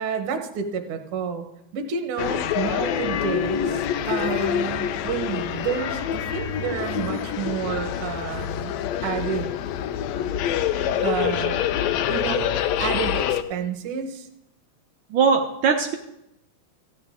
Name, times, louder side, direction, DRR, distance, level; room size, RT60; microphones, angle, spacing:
voice 1, 0.0-1.5 1.7-8.7 9.0-9.5 11.0-11.6 12.1-14.3, right 7 dB, 60° right, 5 dB, 1.7 m, -30 dB
sound 1, 2.2-13.4, left 10 dB, 75° left, 1.7 m, -26 dB
voice 2, 15.1-15.9, right 5 dB, 80° right, 3 dB, 1.1 m, -20 dB
15.0 x 10.5 x 3.6 m, 0.83 s
omnidirectional pair, 3.4 m